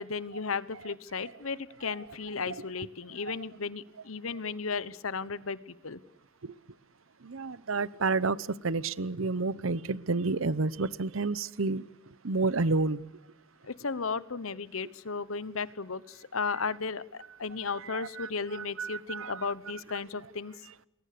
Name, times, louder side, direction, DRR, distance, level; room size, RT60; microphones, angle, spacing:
voice 1, 0.0-6.0 13.6-20.5, left 5 dB, 85° left, 17 dB, 1.1 m, -35 dB
voice 2, 7.2-8.4 8.6-11.8 12.2-13.0 17.9-19.4, right 3 dB, 70° right, 19 dB, 0.8 m, -30 dB
29.0 x 22.0 x 6.8 m, 0.89 s
head